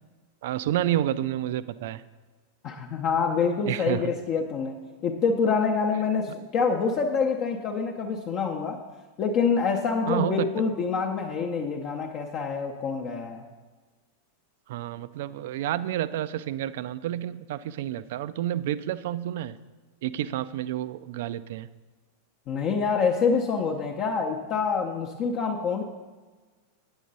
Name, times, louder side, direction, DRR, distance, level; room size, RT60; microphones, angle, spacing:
voice 1, 0.4-2.0 3.7-4.1 10.1-10.5 14.7-19.6 20.0-21.7, right 12 dB, 55° right, 16 dB, 0.3 m, -29 dB
voice 2, 2.6-8.8 9.2-13.4 22.5-25.8, left 5 dB, 35° left, 0 dB, 0.7 m, -26 dB
9.1 x 7.1 x 4.0 m, 1.3 s
figure-of-eight pair, 90°, 0 cm